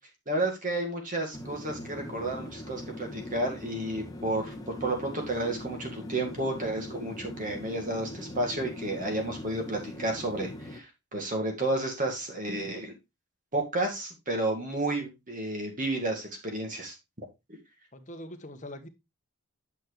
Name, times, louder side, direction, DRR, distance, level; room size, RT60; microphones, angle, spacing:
voice 1, 0.3-4.5 4.8-12.9 13.5-16.9, right 2 dB, 40° right, 2 dB, 2.0 m, -31 dB
sound 1, 1.3-10.8, left 1 dB, 15° left, 1.2 m, -41 dB
voice 2, 17.9-18.9, left 1 dB, 35° left, 6 dB, 1.1 m, -42 dB
8.7 x 6.0 x 3.3 m, 0.23 s
head